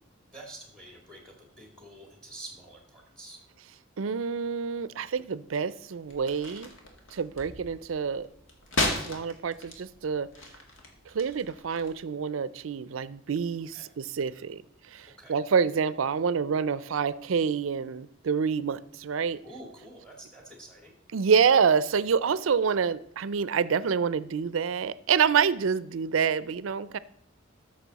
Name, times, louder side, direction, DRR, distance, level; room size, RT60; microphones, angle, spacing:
voice 1, 0.3-3.4 13.7-13.9 15.2-15.3 19.4-20.9, right 1 dB, 5° left, 2 dB, 2.1 m, -47 dB
voice 2, 4.0-6.7 7.1-8.3 9.1-10.3 11.1-14.6 14.9-19.4 21.1-27.0, right 6 dB, 85° right, 17 dB, 0.5 m, -27 dB
sound 1, 6.0-11.9, left 2 dB, 75° left, 1.9 m, -36 dB
13.5 x 6.4 x 4.1 m, 0.74 s
head